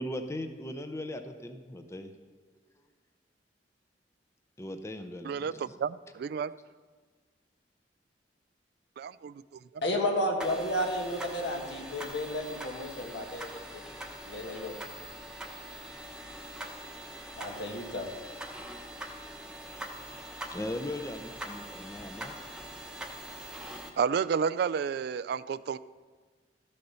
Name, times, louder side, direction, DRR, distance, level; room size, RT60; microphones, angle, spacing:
voice 1, 0.0-2.1 4.6-5.8 20.5-22.4, left 1 dB, 15° left, 7 dB, 0.6 m, -38 dB
voice 2, 5.2-6.5 9.0-9.6 24.0-25.8, right 6 dB, 60° right, 17 dB, 0.3 m, -31 dB
voice 3, 9.8-13.8 14.2-14.7 17.4-18.1, left 1 dB, 75° left, 2 dB, 1.6 m, -32 dB
sound 1, 10.4-23.9, right 1 dB, 5° right, 0.9 m, -43 dB
13.5 x 6.7 x 5.6 m, 1.4 s
head